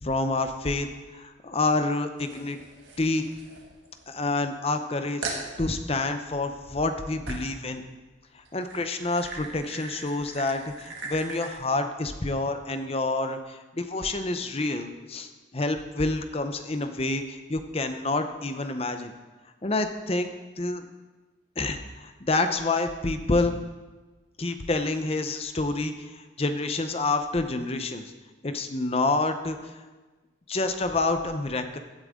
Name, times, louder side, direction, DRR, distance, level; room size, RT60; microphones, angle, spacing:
voice 1, 0.0-0.9 1.1-2.6 3.0-3.3 4.1-7.8 8.3-19.1 19.6-20.9 21.6-23.5 24.4-28.1 28.4-29.8 30.5-31.8, left 2 dB, 30° left, 8 dB, 0.7 m, -28 dB
sound 1, 2.2-4.2 4.7-4.8 5.2-5.5 7.3-7.6 8.4-11.6, right 3 dB, 80° right, 1.9 m, -40 dB
15.5 x 8.9 x 3.7 m, 1.2 s
head